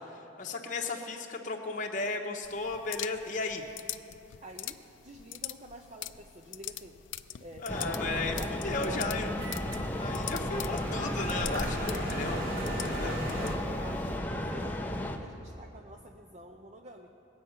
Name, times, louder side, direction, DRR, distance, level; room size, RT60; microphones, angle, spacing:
voice 1, 0.1-3.6 7.6-8.4 8.6-9.3 10.0-12.4 12.8-13.1, left 3 dB, 40° left, 1 dB, 0.9 m, -35 dB
sound 1, 2.4-14.2, left 13 dB, 80° left, 0.4 m, -44 dB
voice 2, 4.4-4.8 5.0-7.0 7.4-9.3 11.6-13.3 13.6-17.1, right 1 dB, 35° right, 2 dB, 0.6 m, -48 dB
sound 2, 7.7-15.2, left 1 dB, 10° left, 0.7 m, -34 dB
sound 3, 8.0-13.5, right 1 dB, 50° right, 2.5 m, -38 dB
20.5 x 7.9 x 5.6 m, 2.9 s
head